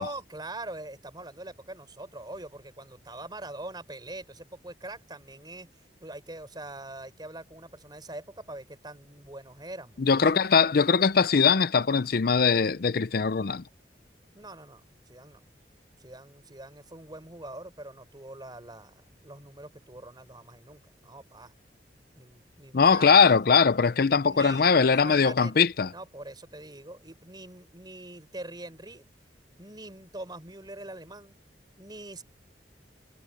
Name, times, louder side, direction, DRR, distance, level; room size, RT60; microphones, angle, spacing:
voice 1, 0.0-5.7 6.0-10.3 14.3-15.4 16.0-21.5 22.2-23.4 24.3-24.6 24.9-25.6 25.9-29.1 29.6-31.3 31.8-32.2, right 2 dB, 25° right, 4.8 m, -43 dB
voice 2, 10.0-13.6 22.7-25.9, left 5 dB, 55° left, 0.6 m, -21 dB
head